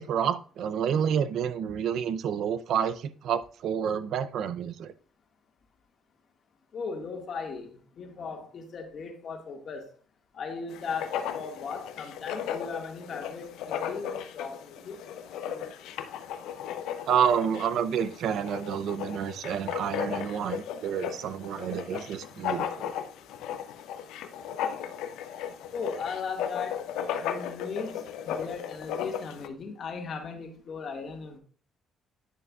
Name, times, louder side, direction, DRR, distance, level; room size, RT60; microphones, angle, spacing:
voice 1, 0.0-4.9 17.1-22.9, right 8 dB, 70° right, 14 dB, 0.5 m, -29 dB
voice 2, 6.7-9.9 10.3-15.0 15.5-15.9 25.7-26.9 27.2-31.4, left 5 dB, 55° left, 3 dB, 1.7 m, -37 dB
Writing, 10.7-29.5, left 9 dB, 90° left, 0.6 m, -36 dB
9.2 x 6.7 x 2.3 m, 0.41 s
cardioid pair, 110°, 0 cm